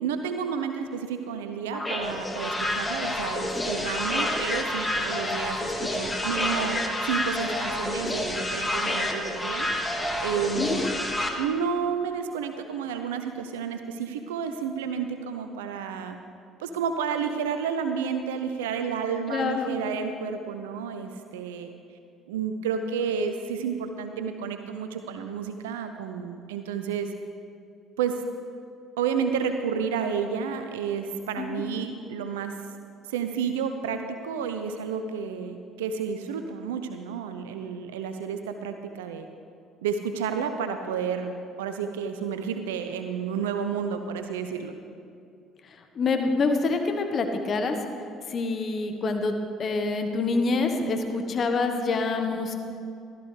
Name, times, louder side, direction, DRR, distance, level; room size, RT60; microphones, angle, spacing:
voice 1, 0.0-9.7 10.2-10.9 11.4-16.2 16.6-21.7 22.3-27.1 28.0-28.2 29.0-32.5 33.1-39.3 39.8-44.7, right 6 dB, 80° right, 7 dB, 0.5 m, -31 dB
sound 1, 1.7-11.3, left 1 dB, 15° left, 1.8 m, -29 dB
voice 2, 19.3-19.7 31.4-31.6 45.9-47.8 48.3-49.3 49.6-52.5, left 3 dB, 45° left, 5 dB, 1.2 m, -26 dB
15.0 x 13.0 x 3.3 m, 2.6 s
hypercardioid pair, 55°, 0 cm